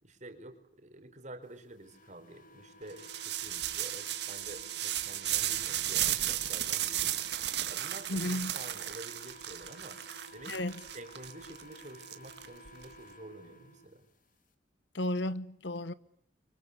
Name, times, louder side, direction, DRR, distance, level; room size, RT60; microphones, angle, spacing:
voice 1, 0.0-10.0 10.3-14.1, right 1 dB, 45° right, 4.4 m, -50 dB
sound 1, 1.8-13.9, equal, 50° left, 3.1 m, -54 dB
sound 2, 3.0-12.8, right 12 dB, 65° right, 2.0 m, -34 dB
voice 2, 8.1-8.5 10.5-10.8 14.9-15.9, left 1 dB, 85° left, 1.2 m, -33 dB
28.5 x 24.5 x 8.4 m
head